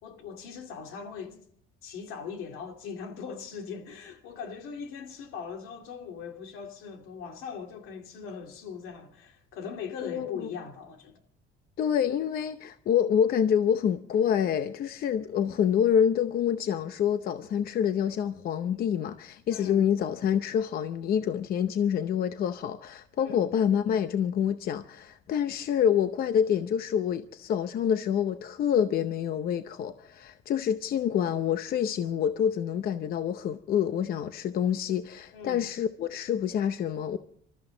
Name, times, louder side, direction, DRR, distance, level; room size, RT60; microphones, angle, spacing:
voice 1, 0.0-1.4 1.8-11.2 19.5-19.9 23.2-23.5 35.3-35.6, left 6 dB, 80° left, 2.5 m, -40 dB
voice 2, 11.8-37.2, left 8 dB, 45° left, 0.7 m, -27 dB
27.0 x 13.5 x 3.9 m
cardioid pair, 160°, 21 cm